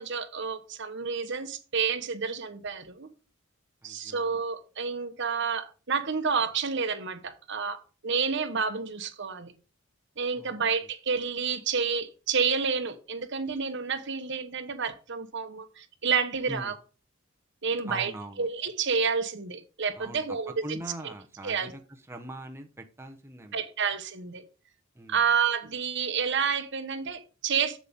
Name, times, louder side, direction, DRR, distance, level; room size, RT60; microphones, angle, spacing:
voice 1, 0.0-3.1 3.8-9.5 10.2-16.7 17.6-18.1 18.4-20.8 21.0-21.1 21.4-21.7 23.5-24.4 25.1-27.8, right 6 dB, 60° right, 1.1 m, -29 dB
voice 2, 3.8-4.4 10.4-10.5 16.5-16.7 17.8-18.5 20.0-21.8 22.1-23.6 24.9-25.2, right 1 dB, 15° right, 1.0 m, -42 dB
8.1 x 7.4 x 3.6 m
head